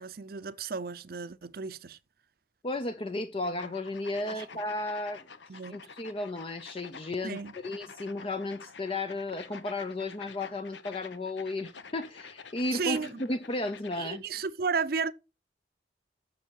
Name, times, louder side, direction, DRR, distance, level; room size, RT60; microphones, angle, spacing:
voice 1, 0.0-2.0 4.3-4.4 5.5-5.8 7.2-7.5 12.7-13.2 14.0-15.1, right 5 dB, 55° right, 0.6 m, -33 dB
voice 2, 2.6-14.2, left 2 dB, 30° left, 0.5 m, -34 dB
sound 1, 3.4-14.2, left 5 dB, 80° left, 0.9 m, -49 dB
7.9 x 6.7 x 6.3 m
head